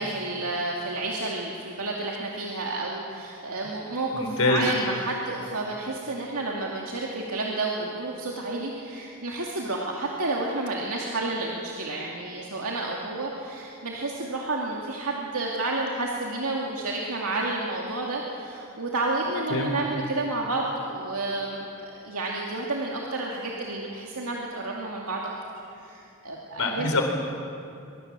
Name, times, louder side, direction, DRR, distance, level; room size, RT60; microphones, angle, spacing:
voice 1, 0.0-25.4 25.7-26.9, right 2 dB, 85° right, -2 dB, 2.5 m, -30 dB
voice 2, 4.1-4.6 19.5-19.7 26.6-27.0, left 2 dB, 80° left, 3 dB, 3.9 m, -24 dB
23.5 x 22.5 x 7.6 m, 2.6 s
head